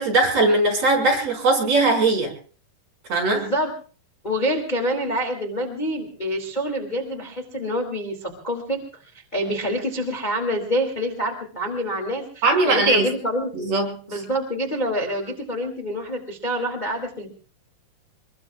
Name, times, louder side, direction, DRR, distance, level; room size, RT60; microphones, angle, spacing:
voice 1, 0.0-2.3 3.1-3.4 12.4-13.1 13.5-13.9, right 2 dB, 35° right, 0 dB, 5.9 m, -20 dB
voice 2, 3.3-3.7 4.2-8.8 9.1-13.7 14.1-17.3, equal, 20° left, 2 dB, 1.3 m, -26 dB
25.5 x 22.5 x 2.4 m, 0.39 s
omnidirectional pair, 5.7 m